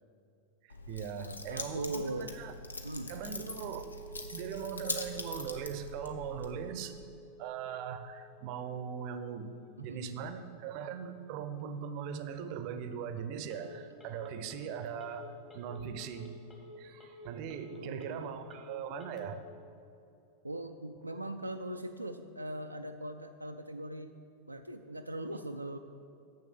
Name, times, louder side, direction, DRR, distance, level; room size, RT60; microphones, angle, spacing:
voice 1, 0.6-2.5 3.1-3.9 4.3-7.0 7.4-9.5 9.8-16.3 16.8-19.5, right 7 dB, 45° right, 10 dB, 0.6 m, -40 dB
Keys jangling, 0.7-6.7, left 2 dB, 80° left, 0.7 m, -42 dB
voice 2, 1.2-2.3 2.8-3.1 9.8-10.3 17.7-18.4 20.4-24.1 24.5-25.8, right 1 dB, 85° right, 5 dB, 0.3 m, -40 dB
Telephone, 3.2-19.3, right 2 dB, 20° left, 1.5 m, -52 dB
6.8 x 6.7 x 7.6 m, 2.6 s
figure-of-eight pair, 90°, 0 cm